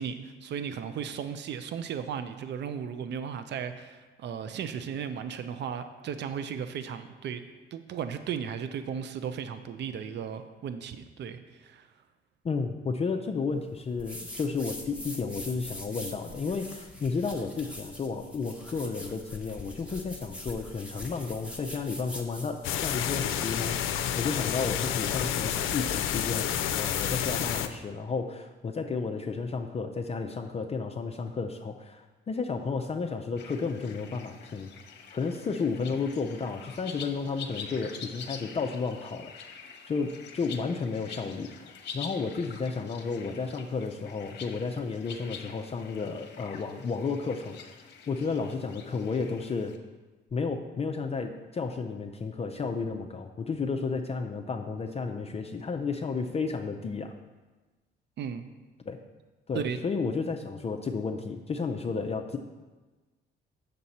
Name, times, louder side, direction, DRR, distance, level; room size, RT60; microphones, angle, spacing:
voice 1, 0.0-7.4 7.7-11.9 58.2-58.4 59.5-59.8, right 7 dB, 60° right, 10 dB, 0.6 m, -35 dB
voice 2, 12.4-34.7 35.1-39.6 39.9-49.7 50.3-57.1 58.9-59.0 59.5-62.4, left 4 dB, 30° left, 4 dB, 0.5 m, -32 dB
sound 1, 14.0-23.0, left 1 dB, 5° right, 1.2 m, -43 dB
sound 2, 22.6-27.7, left 10 dB, 85° left, 0.5 m, -29 dB
sound 3, 33.4-49.8, left 6 dB, 60° left, 0.9 m, -46 dB
7.5 x 6.7 x 4.2 m, 1.2 s
cardioid pair, 90°, 20 cm